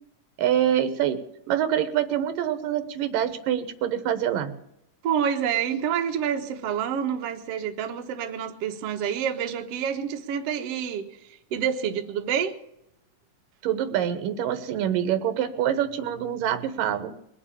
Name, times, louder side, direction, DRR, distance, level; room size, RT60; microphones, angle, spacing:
voice 1, 0.4-1.2 1.5-4.5 13.6-17.1, right 10 dB, 80° right, 2.9 m, -25 dB
voice 2, 5.0-11.1 11.5-12.6, right 8 dB, 55° right, 2.0 m, -28 dB
22.0 x 7.4 x 8.5 m
omnidirectional pair, 3.8 m